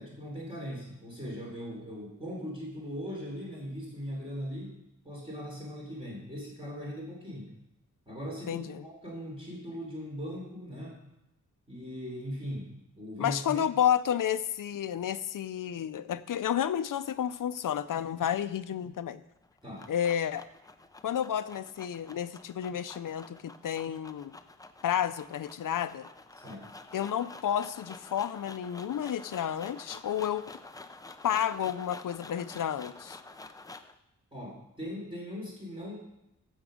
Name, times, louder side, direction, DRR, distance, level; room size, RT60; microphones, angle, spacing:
voice 1, 0.0-4.8 5.0-7.5 8.1-11.0 11.7-12.7 13.0-13.6 19.6-19.9 26.4-26.7 34.3-36.0, equal, 15° right, -4 dB, 3.3 m, -39 dB
voice 2, 8.5-8.8 13.2-19.2 19.9-20.5 21.0-24.3 24.8-26.1 26.9-30.5 31.2-33.2, left 9 dB, 75° left, 13 dB, 0.6 m, -31 dB
sound 1, 19.4-34.0, left 2 dB, 10° left, 0.5 m, -49 dB
14.5 x 7.3 x 5.1 m, 0.88 s
wide cardioid pair, 170°, 32 cm